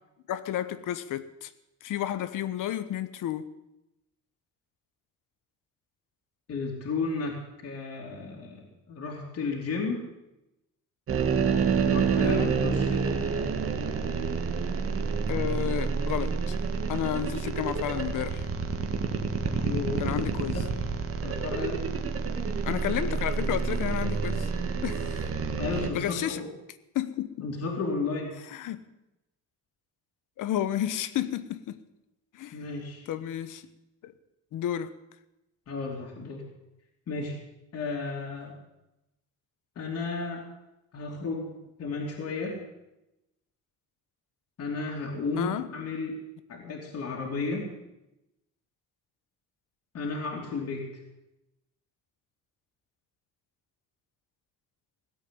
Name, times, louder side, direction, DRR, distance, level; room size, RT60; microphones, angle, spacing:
voice 1, 0.3-1.5 1.8-3.5 12.2-12.6 15.3-16.5 16.9-18.5 20.0-20.6 22.6-24.5 24.8-25.2 25.9-26.4 26.9-27.5 28.5-28.9 30.4-31.8 32.3-32.6 33.1-33.7 34.0-34.1 34.5-34.9 45.4-45.7, left 11 dB, 80° left, 1.2 m, -31 dB
voice 2, 6.5-10.0 11.8-13.0 19.5-20.1 20.5-20.7 21.2-21.8 25.6-26.5 27.4-28.3 32.5-33.1 35.7-36.4 37.1-37.4 37.7-38.5 39.7-40.5 40.9-42.6 44.6-46.2 46.5-47.7 49.9-50.9, left 3 dB, 50° left, 3.0 m, -33 dB
sound 1, 11.1-25.9, right 5 dB, 45° right, 1.7 m, -28 dB
17.0 x 8.3 x 9.2 m
cardioid pair, 140°, 31 cm